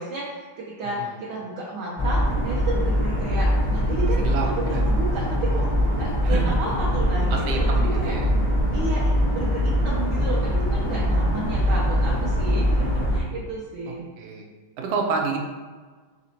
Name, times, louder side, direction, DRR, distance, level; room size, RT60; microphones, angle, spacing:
voice 1, 0.0-5.7 5.9-8.2 8.7-14.0, right 2 dB, 65° right, -5 dB, 1.2 m, -32 dB
sound 1, 2.0-13.2, equal, 65° left, 0.3 m, -22 dB
voice 2, 4.2-4.8 6.2-6.4 7.3-8.3 12.7-12.9 14.2-14.4 14.8-15.4, right 4 dB, 85° right, 1 dB, 1.5 m, -29 dB
4.2 x 3.8 x 2.8 m, 1.4 s
omnidirectional pair, 2.2 m